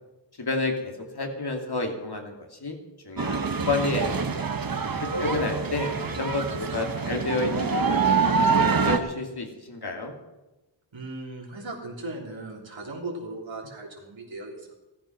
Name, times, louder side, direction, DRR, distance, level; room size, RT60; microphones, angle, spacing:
voice 1, 0.4-2.8 3.0-4.2 5.0-10.1, left 2 dB, 55° left, 2 dB, 2.7 m, -30 dB
sound 1, 3.2-9.0, right 5 dB, 50° right, 1.2 m, -25 dB
voice 2, 4.8-5.7 10.9-14.7, right 2 dB, 90° right, -1 dB, 3.5 m, -38 dB
15.5 x 13.5 x 6.0 m, 1.1 s
wide cardioid pair, 85°, 45 cm